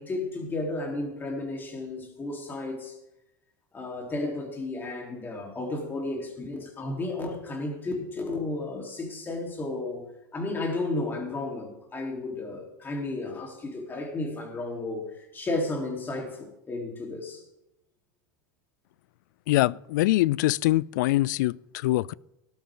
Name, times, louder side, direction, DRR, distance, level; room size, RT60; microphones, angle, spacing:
voice 1, 0.0-3.0 3.7-10.0 10.3-17.4, left 2 dB, 20° left, 3.7 m, -33 dB
voice 2, 19.5-22.2, left 17 dB, 75° left, 0.4 m, -24 dB
19.0 x 11.5 x 3.8 m
supercardioid pair, 125°, 10 cm